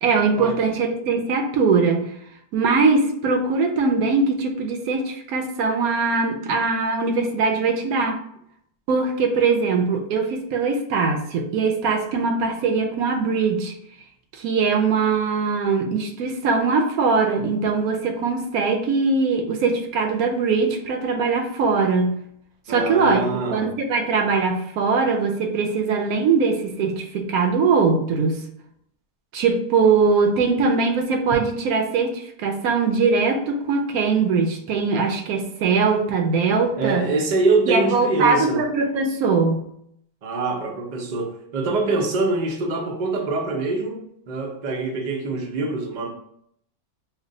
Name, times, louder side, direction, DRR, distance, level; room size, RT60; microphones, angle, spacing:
voice 1, 0.0-2.1 2.5-8.2 8.9-13.7 14.3-22.1 22.7-28.4 29.3-37.1 37.7-39.6, right 4 dB, 80° right, 4 dB, 1.0 m, -21 dB
voice 2, 22.7-23.6 36.8-38.6 40.2-46.1, right 3 dB, 60° right, 1 dB, 0.4 m, -24 dB
3.2 x 2.2 x 3.8 m, 0.71 s
omnidirectional pair, 1.6 m